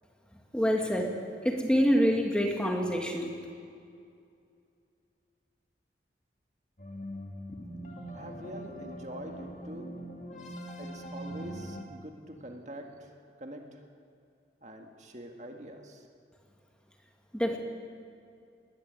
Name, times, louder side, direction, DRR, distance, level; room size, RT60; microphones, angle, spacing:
voice 1, 0.5-3.3 17.3-17.6, equal, 5° left, 1 dB, 1.8 m, -26 dB
sound 1, 6.8-11.8, equal, 40° left, 2.0 m, -42 dB
voice 2, 8.1-9.9 10.8-13.1 13.4-13.8 14.6-16.1, right 1 dB, 40° right, 3 dB, 1.8 m, -44 dB
20.5 x 14.0 x 9.3 m, 2.4 s
head